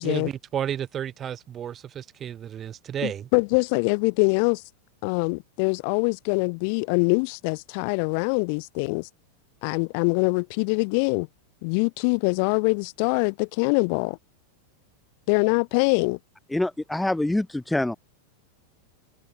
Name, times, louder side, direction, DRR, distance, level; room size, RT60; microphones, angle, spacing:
voice 1, 0.0-3.3, right 9 dB, 25° right, 1.6 m, -32 dB
voice 2, 3.0-4.6 5.0-9.1 9.6-11.3 11.6-14.2 15.3-16.2, left 37 dB, 45° left, 1.9 m, -24 dB
voice 3, 16.5-18.0, left 1 dB, 5° left, 0.9 m, -25 dB
figure-of-eight pair, 90°, 0 cm